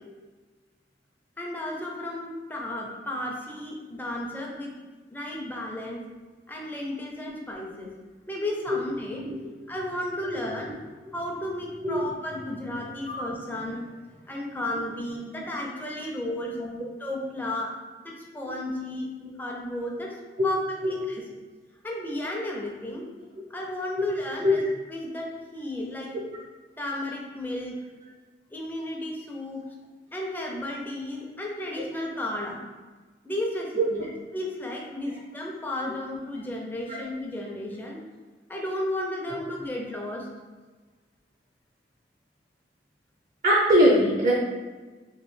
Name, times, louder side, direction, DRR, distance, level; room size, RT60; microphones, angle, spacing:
voice 1, 1.4-4.7 5.1-6.0 6.5-7.9 8.3-9.3 9.7-10.7 11.1-16.6 17.0-17.7 18.0-19.1 19.4-20.1 20.4-20.6 20.9-21.2 21.8-23.1 23.5-24.6 24.9-26.1 26.8-27.8 28.5-29.6 30.1-32.6 33.2-34.1 34.3-38.0 38.5-40.3, left 1 dB, 10° left, -2 dB, 0.5 m, -33 dB
voice 2, 43.4-44.3, equal, 45° right, -4 dB, 0.5 m, -22 dB
3.1 x 2.6 x 3.1 m, 1.3 s
head